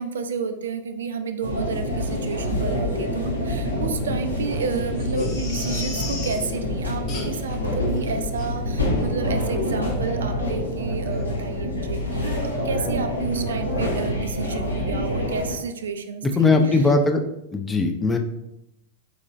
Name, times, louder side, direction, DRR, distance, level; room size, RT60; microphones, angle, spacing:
voice 1, 0.0-16.9, right 5 dB, 65° right, 8 dB, 0.3 m, -31 dB
sound 1, 1.4-15.5, left 1 dB, 80° left, 0.7 m, -26 dB
Crying sobbing, 5.0-6.5 7.1-7.6 7.9-8.0 8.4-8.5 9.0-9.1 9.4-9.5, left 4 dB, 40° left, 0.8 m, -36 dB
voice 2, 16.4-17.2 17.5-18.2, left 3 dB, 15° left, 5 dB, 0.4 m, -19 dB
3.9 x 2.9 x 2.5 m, 0.83 s
figure-of-eight pair, 90°, 0 cm